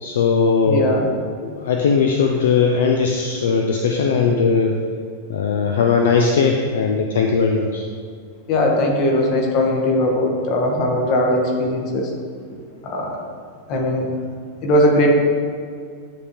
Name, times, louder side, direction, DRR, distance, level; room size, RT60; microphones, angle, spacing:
voice 1, 0.0-0.9 1.5-4.7 5.3-7.8, left 5 dB, 60° left, 2 dB, 0.4 m, -18 dB
voice 2, 0.6-1.1 8.5-12.1 12.8-13.2 13.7-14.1 14.6-15.1, left 1 dB, 40° left, 0 dB, 1.1 m, -19 dB
9.2 x 3.6 x 3.0 m, 2.1 s
figure-of-eight pair, 90°, 0 cm